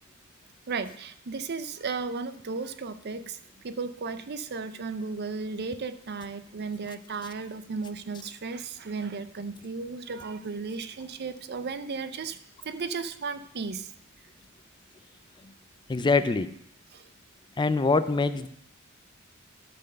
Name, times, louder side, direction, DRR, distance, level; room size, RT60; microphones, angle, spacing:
voice 1, 0.7-3.4 3.6-12.4 12.6-13.9 16.9-17.0, right 4 dB, 50° right, 12 dB, 0.6 m, -35 dB
voice 2, 15.9-16.5 17.6-18.5, left 3 dB, 20° left, 12 dB, 0.4 m, -24 dB
11.5 x 4.3 x 6.5 m, 0.68 s
head